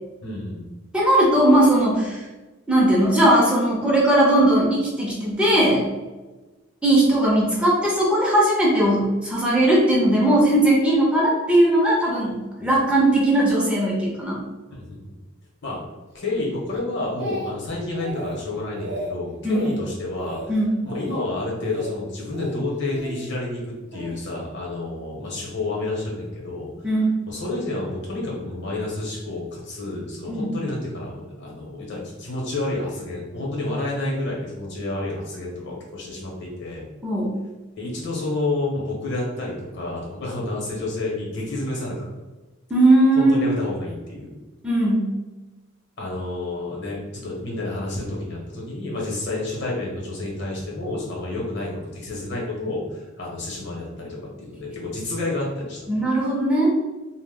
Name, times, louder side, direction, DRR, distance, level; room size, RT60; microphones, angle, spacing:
voice 1, 0.2-0.6 12.6-12.7 14.7-15.0 15.6-15.8 16.1-20.5 20.8-26.7 27.3-36.8 37.8-42.1 43.2-44.4 46.0-55.9, left 2 dB, 60° left, -3 dB, 0.8 m, -29 dB
voice 2, 0.9-2.2 2.7-5.8 6.8-14.4 19.4-19.6 20.5-20.7 26.8-27.1 30.3-30.5 37.0-37.4 42.7-43.5 44.6-45.1 55.9-56.7, right 1 dB, 5° right, -4 dB, 0.4 m, -18 dB
Speech, 16.7-17.7 18.0-18.4 18.7-19.1 19.5-19.8 20.2-20.5 20.8-21.2 21.6-21.9 22.3-23.2 23.9-24.2, right 1 dB, 55° right, 0.5 m, -34 dB
2.1 x 2.1 x 3.4 m, 1.2 s
head